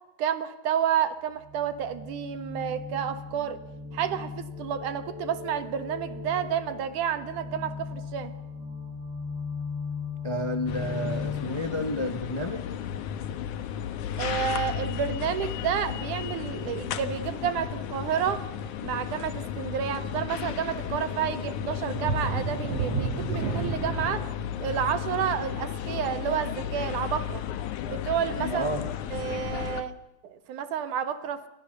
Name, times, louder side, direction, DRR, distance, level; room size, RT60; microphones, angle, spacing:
voice 1, 0.2-3.6 3.9-8.3 14.2-18.4 18.8-24.3 24.6-27.4 27.9-28.7 29.1-30.0 30.2-31.4, right 8 dB, 80° right, 11 dB, 3.0 m, -30 dB
sound 1, 1.4-11.5, left 5 dB, 35° right, 2.9 m, -37 dB
voice 2, 10.2-12.6 28.4-28.8, equal, 25° left, 7 dB, 0.6 m, -31 dB
sound 2, 10.7-29.8, left 10 dB, 80° left, 2.6 m, -34 dB
sound 3, 21.9-27.4 27.8-28.0 28.4-28.5, right 5 dB, 60° right, 2.5 m, -33 dB
29.5 x 23.0 x 6.8 m, 0.93 s
omnidirectional pair, 3.5 m